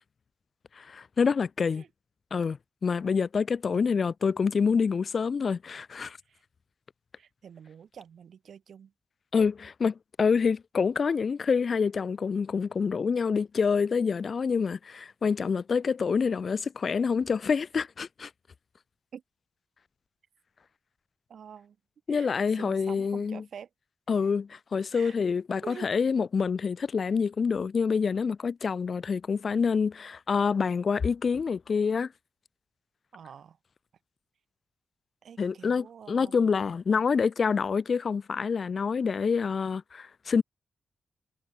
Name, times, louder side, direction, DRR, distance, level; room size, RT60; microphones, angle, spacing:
voice 1, 0.8-1.8 2.3-6.2 9.3-18.3 22.1-23.4 24.1-32.1 35.4-40.4, left 5 dB, 55° left, 0.7 m, -27 dB
voice 2, 3.7-4.1 6.3-6.4 7.2-8.9 19.1-19.2 21.3-21.8 22.1-23.7 24.2-24.3 24.9-25.2 25.6-25.9 33.1-33.6 35.2-36.3, right 7 dB, 80° right, 3.9 m, -47 dB
cardioid pair, 80°, 0 cm